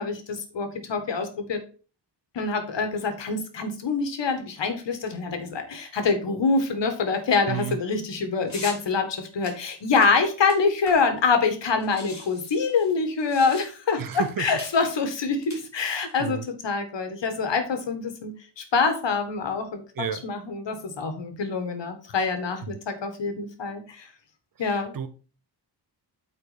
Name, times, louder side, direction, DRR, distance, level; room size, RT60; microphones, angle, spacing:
voice 1, 0.0-1.6 2.3-19.8 20.2-24.1 24.6-25.0, left 4 dB, 80° left, 7 dB, 1.8 m, -25 dB
voice 2, 7.5-7.8 14.0-14.5 16.2-16.5 20.0-20.2 22.6-22.8 24.6-25.1, right 8 dB, 50° right, 11 dB, 0.9 m, -32 dB
sound 1, 8.5-8.8 9.4-11.3 11.5-11.6 11.8-14.0 14.6-14.8 15.4-16.1, left 2 dB, 40° left, 2.7 m, -42 dB
8.5 x 4.4 x 5.1 m, 0.37 s
wide cardioid pair, 130°, 43 cm